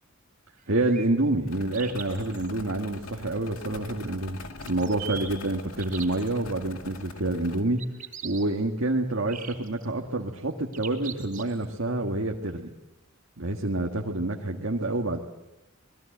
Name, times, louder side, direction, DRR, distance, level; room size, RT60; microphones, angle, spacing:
sound 1, 0.6-1.1 1.7-2.5 4.6-5.3 5.8-6.3 7.8-8.4 9.3-9.9 10.7-11.6, right 7 dB, 40° right, 4.3 m, -40 dB
voice 1, 0.7-4.4 4.6-7.8 8.2-12.7 13.4-15.2, right 2 dB, 70° right, 1 dB, 1.8 m, -28 dB
sound 2, 1.5-7.6, left 3 dB, 85° left, 2.4 m, -43 dB
27.0 x 20.5 x 8.0 m, 1.0 s
head